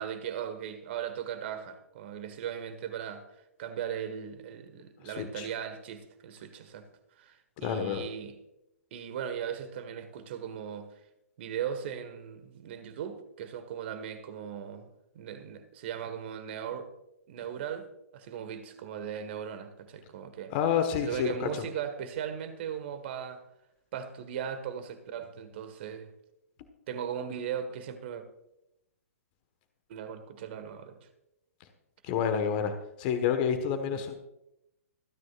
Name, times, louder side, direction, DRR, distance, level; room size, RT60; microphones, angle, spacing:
voice 1, 0.0-3.2 3.6-6.9 7.2-8.3 8.9-10.9 11.4-16.9 17.3-17.9 18.1-20.5 21.0-23.4 23.9-26.1 26.9-28.2 29.9-31.0 33.9-34.0, right 8 dB, 45° right, 10 dB, 1.7 m, -38 dB
voice 2, 5.0-5.5 7.6-8.0 20.5-21.6 32.0-32.7 33.0-34.1, left 8 dB, 40° left, 8 dB, 1.4 m, -29 dB
26.0 x 9.7 x 2.5 m, 0.87 s
figure-of-eight pair, 120°, 8 cm